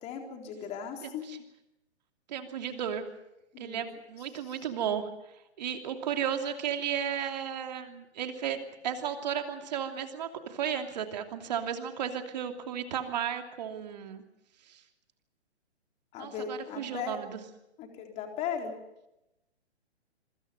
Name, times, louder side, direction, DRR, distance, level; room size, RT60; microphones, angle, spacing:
voice 1, 0.0-1.3 3.5-3.9 4.4-4.6 16.1-17.2 17.8-18.7, left 7 dB, 20° left, 3 dB, 4.0 m, -37 dB
voice 2, 1.0-1.4 2.3-3.0 3.6-5.1 5.6-8.6 8.8-14.2 14.7-14.8 16.2-17.4, right 8 dB, 40° right, 6 dB, 2.9 m, -34 dB
27.5 x 24.5 x 5.4 m, 0.90 s
figure-of-eight pair, 130°, 34 cm